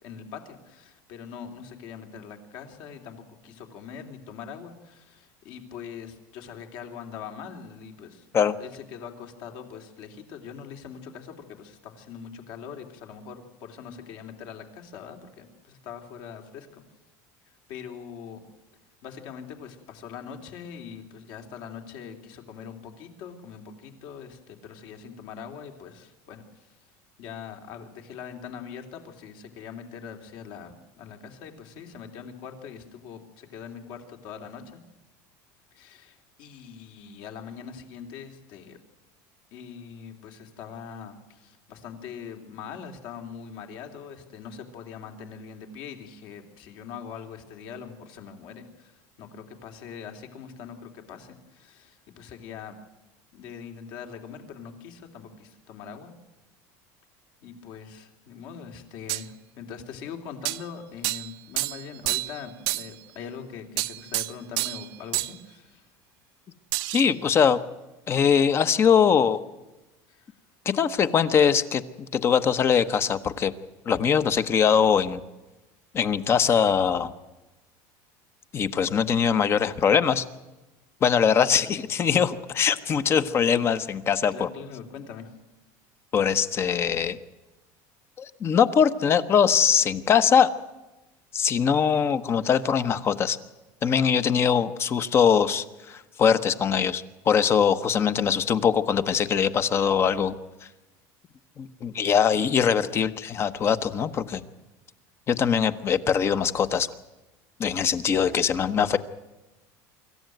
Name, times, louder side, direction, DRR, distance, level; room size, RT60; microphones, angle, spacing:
voice 1, 0.0-8.3 8.6-16.8 17.7-18.4 19.0-26.7 27.2-34.8 35.7-38.8 39.5-52.8 53.3-56.1 57.4-65.8 70.1-70.3 84.3-85.3, left 7 dB, 60° left, 5 dB, 3.1 m, -42 dB
sound 1, 59.1-59.2 60.5-60.6 61.0-61.3 61.6-62.4 62.7-62.9 63.8-64.9 65.1-65.3 66.7-67.1, right 21 dB, 65° right, 0.8 m, -29 dB
voice 2, 66.9-67.6 68.1-69.4 70.6-73.5 73.9-75.2 75.9-77.1 78.5-80.2 81.0-84.5 86.1-87.2 88.2-90.5 91.3-93.4 93.8-100.3 101.6-104.4 105.3-106.9 107.6-109.0, left 7 dB, 30° left, 13 dB, 1.0 m, -22 dB
25.0 x 14.0 x 9.3 m, 1.1 s
cardioid pair, 145°, 9 cm